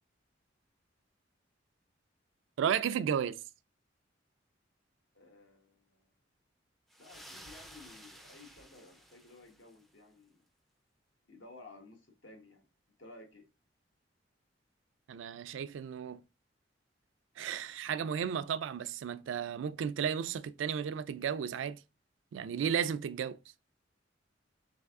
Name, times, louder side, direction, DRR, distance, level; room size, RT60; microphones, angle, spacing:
voice 1, 2.6-3.4 15.1-16.2 17.4-21.8 22.3-23.4, right 8 dB, 80° right, 0.3 m, -33 dB
voice 2, 5.1-6.0 7.0-10.3 11.3-12.6 13.0-13.4, left 2 dB, 80° left, 1.2 m, -55 dB
sound 1, 6.9-9.9, equal, ahead, 0.3 m, -54 dB
3.4 x 3.2 x 3.5 m
head